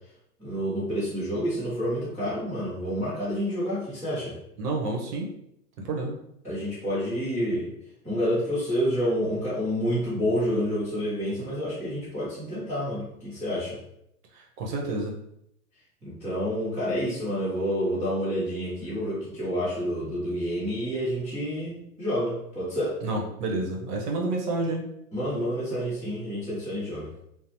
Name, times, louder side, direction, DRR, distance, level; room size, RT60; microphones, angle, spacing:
voice 1, 0.4-4.4 6.4-7.7 8.0-13.8 16.0-23.0 25.1-27.1, equal, 5° right, -16 dB, 0.3 m, -28 dB
voice 2, 4.6-5.3 5.8-6.1 14.3-15.1 23.0-24.9, right 2 dB, 70° right, 0 dB, 0.8 m, -29 dB
2.7 x 2.0 x 2.7 m, 0.76 s
hypercardioid pair, 120°, 48 cm